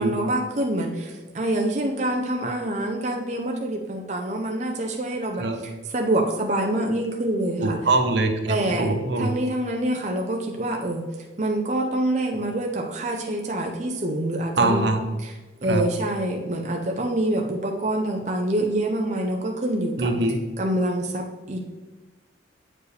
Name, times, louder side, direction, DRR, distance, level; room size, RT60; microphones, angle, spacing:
voice 1, 0.0-7.9 8.5-11.0 11.4-14.8 15.2-20.1 20.6-21.6, right 1 dB, 40° right, 1 dB, 0.6 m, -26 dB
voice 2, 7.6-9.3 14.6-15.0 15.7-15.8 20.0-20.4, right 2 dB, 70° right, 5 dB, 0.8 m, -22 dB
8.4 x 4.7 x 3.3 m, 1.2 s
head